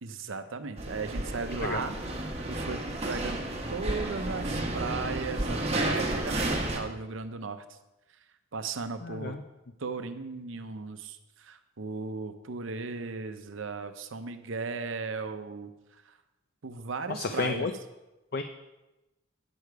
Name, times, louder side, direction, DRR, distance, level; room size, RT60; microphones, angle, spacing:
voice 1, 0.0-2.8 3.1-3.4 3.7-7.6 8.5-9.4 9.8-15.7 16.0-16.1 16.6-17.7, right 4 dB, 70° right, 9 dB, 0.7 m, -36 dB
sound 1, 0.8-6.8, right 1 dB, 30° right, 1.2 m, -32 dB
voice 2, 9.0-9.4 17.1-17.7 18.3-18.4, left 4 dB, 50° left, 7 dB, 0.5 m, -31 dB
9.6 x 6.8 x 4.7 m, 1.0 s
head